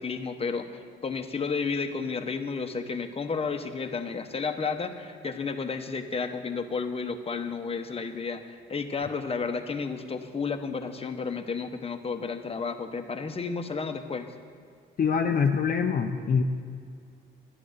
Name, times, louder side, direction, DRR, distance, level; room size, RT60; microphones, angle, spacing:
voice 1, 0.0-14.3, left 5 dB, 30° left, 6 dB, 1.1 m, -32 dB
voice 2, 15.0-16.4, left 6 dB, 45° left, 3 dB, 0.8 m, -24 dB
11.0 x 9.9 x 6.7 m, 2.3 s
cardioid pair, 90°, 20 cm